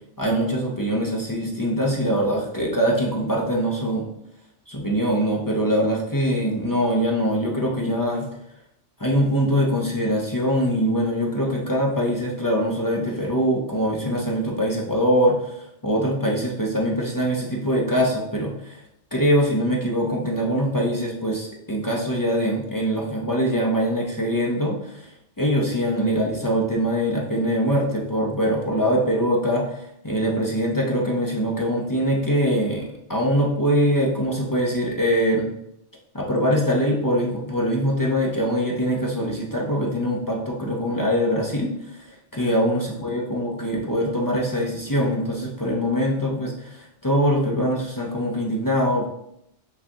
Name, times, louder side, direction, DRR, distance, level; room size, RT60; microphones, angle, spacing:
voice 1, 0.2-4.1 4.7-8.3 9.0-18.8 19.1-25.1 25.4-35.5 36.1-49.1, equal, 30° left, -2 dB, 0.4 m, -23 dB
7.8 x 2.7 x 2.3 m, 0.79 s
omnidirectional pair, 1.2 m